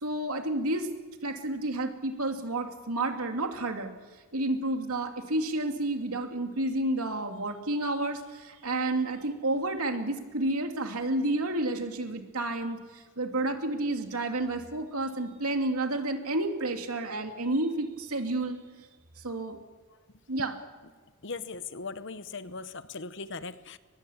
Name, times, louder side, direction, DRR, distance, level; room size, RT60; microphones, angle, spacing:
voice 1, 0.0-0.9 1.2-3.9 4.3-18.6 19.2-19.6 20.3-20.5, right 2 dB, 85° right, 4 dB, 2.8 m, -30 dB
voice 2, 21.2-23.8, left 4 dB, 55° left, 13 dB, 1.0 m, -39 dB
24.0 x 20.5 x 7.3 m, 1.4 s
head